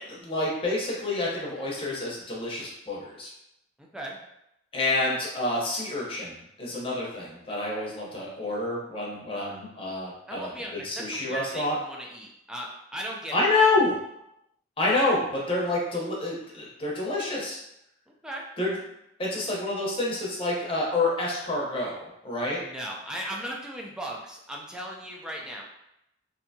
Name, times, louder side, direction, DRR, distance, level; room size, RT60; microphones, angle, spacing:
voice 1, 0.0-3.3 4.7-10.5 10.8-11.8 13.3-14.0 14.8-17.6 18.6-18.7 19.2-22.0 22.2-22.6, left 2 dB, 30° left, -4 dB, 0.8 m, -28 dB
voice 2, 3.8-4.2 10.3-13.3 18.2-18.4 22.6-25.6, right 1 dB, 5° right, -2 dB, 0.5 m, -37 dB
3.3 x 2.7 x 2.7 m, 0.82 s
head